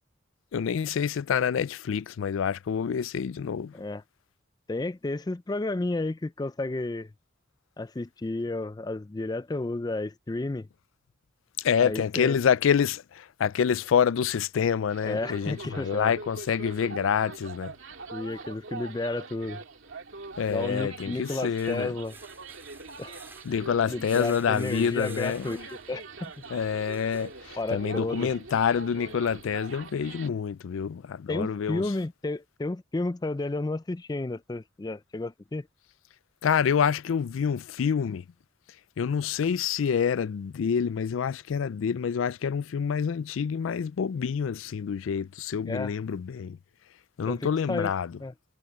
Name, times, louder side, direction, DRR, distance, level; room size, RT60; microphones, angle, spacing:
voice 1, 0.5-3.7 11.6-17.7 20.4-21.9 23.5-25.6 26.5-31.8 36.4-38.2 39.0-46.6 47.2-48.1, left 7 dB, 85° left, 0.4 m, -27 dB
voice 2, 4.7-7.1 7.8-10.7 11.8-12.4 15.0-16.1 18.1-19.6 20.5-22.2 23.0-23.1 23.9-26.3 27.6-28.3 31.3-35.7 45.6-45.9 47.3-47.9 48.2-48.3, left 2 dB, 20° left, 0.4 m, -32 dB
sound 1, 14.9-30.3, right 3 dB, 80° right, 2.3 m, -43 dB
sound 2, 17.7-17.8 20.3-27.9 28.5-28.6 29.0-29.1, right 3 dB, 10° right, 4.3 m, -52 dB
head